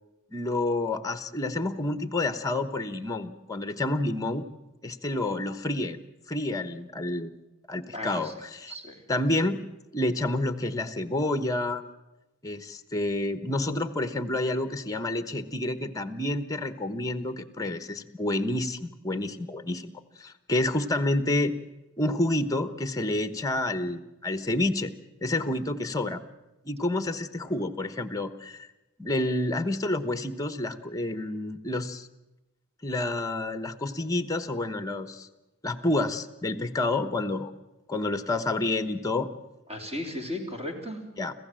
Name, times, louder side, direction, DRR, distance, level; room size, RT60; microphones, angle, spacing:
voice 1, 0.3-4.4 4.8-6.0 6.3-7.3 7.7-8.7 9.1-9.6 9.9-11.8 12.4-19.9 20.2-21.5 22.0-24.9 25.2-26.2 26.6-28.7 29.0-32.1 32.8-35.3 35.6-37.5 37.9-39.3 41.2-41.3, left 2 dB, 15° left, 11 dB, 1.0 m, -29 dB
voice 2, 7.9-8.3 8.7-9.0 27.4-27.5 39.7-41.0, left 1 dB, 30° right, 2 dB, 3.3 m, -35 dB
26.0 x 16.0 x 7.6 m, 1.0 s
head